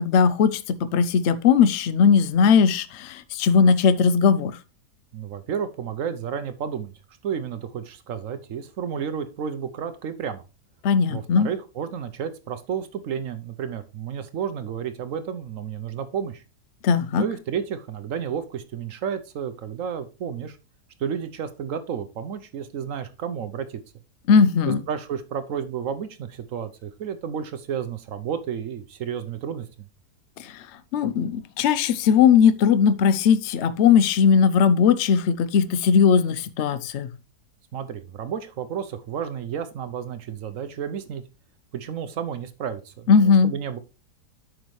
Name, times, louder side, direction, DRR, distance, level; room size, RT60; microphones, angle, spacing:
voice 1, 0.0-4.6 10.8-11.5 16.8-17.2 24.3-24.8 30.9-37.1 43.1-43.5, left 6 dB, 65° left, 0.7 m, -18 dB
voice 2, 5.1-6.9 7.2-10.4 11.1-16.4 17.1-20.6 21.0-23.8 24.9-29.7 37.7-41.2 41.7-43.8, right 7 dB, 65° right, 0.9 m, -31 dB
9.2 x 6.3 x 3.1 m
omnidirectional pair, 1.8 m